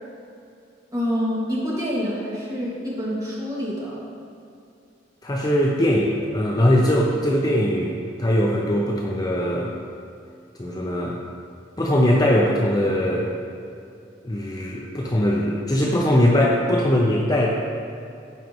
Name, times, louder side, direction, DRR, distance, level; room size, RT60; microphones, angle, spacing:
voice 1, 0.9-4.0, equal, 20° right, -7 dB, 2.0 m, -27 dB
voice 2, 5.2-9.7 10.6-11.2 11.8-13.3 14.2-17.5, equal, 20° left, -2 dB, 0.6 m, -21 dB
14.5 x 5.2 x 3.0 m, 2.5 s
head